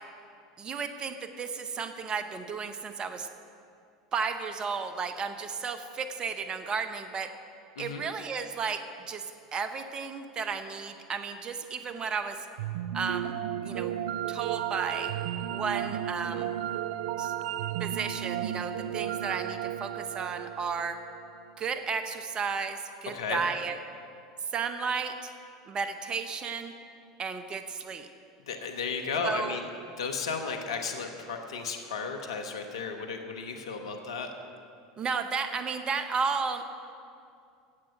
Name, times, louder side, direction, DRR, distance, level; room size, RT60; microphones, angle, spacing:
voice 1, 0.6-3.3 4.1-7.3 7.8-9.3 9.5-12.5 12.9-13.9 14.3-15.1 15.5-16.5 17.2-17.3 17.8-21.0 21.6-23.8 24.5-25.3 25.7-26.7 27.2-28.1 29.2-29.5 35.0-36.6, right 5 dB, 30° right, 9 dB, 0.8 m, -33 dB
sound 1, 12.6-21.7, right 11 dB, 75° right, 0.4 m, -34 dB
voice 2, 28.5-29.7 30.0-34.3, left 5 dB, 80° left, 4 dB, 1.1 m, -34 dB
16.0 x 7.6 x 5.8 m, 2.5 s
hypercardioid pair, 85°, 3 cm